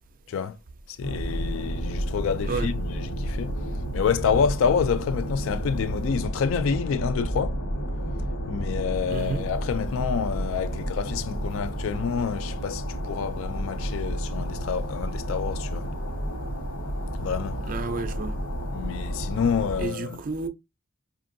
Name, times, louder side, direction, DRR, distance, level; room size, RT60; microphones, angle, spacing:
voice 1, 0.9-3.5 3.9-7.6 8.5-15.9 17.2-17.6 18.7-20.2, left 6 dB, 65° left, 0.3 m, -28 dB
sound 1, 1.0-19.9, right 1 dB, 80° left, 1.3 m, -31 dB
voice 2, 9.1-9.4 17.7-18.4 19.8-20.5, right 3 dB, 40° right, 0.4 m, -31 dB
5.2 x 2.5 x 2.6 m
head